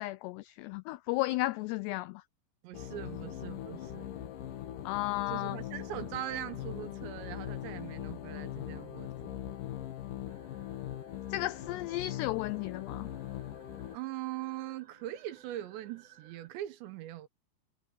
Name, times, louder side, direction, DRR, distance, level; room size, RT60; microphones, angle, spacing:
voice 1, 0.0-2.2 4.9-5.6 11.3-13.1, left 18 dB, 85° left, 2.4 m, -34 dB
voice 2, 2.6-4.1 5.3-9.4 13.9-17.3, right 13 dB, 75° right, 3.2 m, -41 dB
sound 1, 2.7-14.0, left 11 dB, 65° left, 2.4 m, -41 dB
sound 2, 10.3-16.5, right 7 dB, 40° right, 3.4 m, -61 dB
omnidirectional pair, 5.4 m